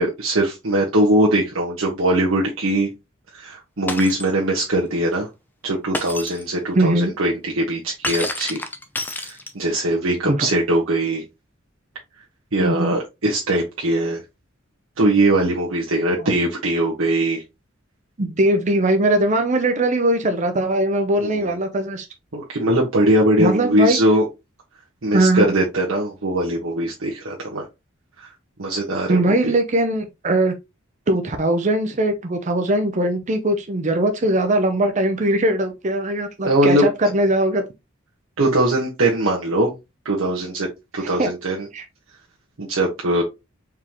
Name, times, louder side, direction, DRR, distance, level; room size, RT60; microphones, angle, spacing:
voice 1, 0.0-2.9 3.3-5.3 5.6-8.6 9.1-11.2 12.5-14.2 15.0-17.4 21.2-21.5 22.3-24.3 25.0-27.7 28.2-28.3 28.6-29.5 36.4-36.9 38.4-39.7 40.0-40.7 40.9-41.7 42.6-43.2, right 1 dB, 80° right, 1.1 m, -21 dB
Shatter, 3.9-4.3 5.9-6.4 8.0-9.8, left 2 dB, 10° left, 0.6 m, -29 dB
voice 2, 6.7-7.1 10.2-10.5 12.6-13.0 18.2-22.1 23.4-24.0 25.1-25.5 29.1-30.5 31.1-37.6 41.2-41.3 41.7-41.8, right 1 dB, 35° right, 0.6 m, -20 dB
4.7 x 3.7 x 2.9 m
head